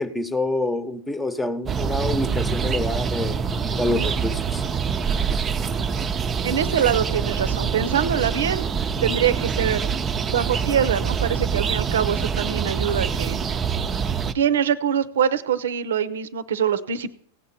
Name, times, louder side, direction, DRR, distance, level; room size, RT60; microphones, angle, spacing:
voice 1, 0.0-4.6, left 2 dB, 10° left, 12 dB, 1.0 m, -27 dB
sound 1, 1.6-14.3, right 6 dB, 25° right, 0.6 m, -25 dB
voice 2, 6.4-8.7 9.0-9.8 10.3-13.4 14.3-17.2, right 8 dB, 75° right, 14 dB, 0.7 m, -24 dB
17.0 x 7.6 x 4.3 m, 0.64 s
hypercardioid pair, 95°, 0 cm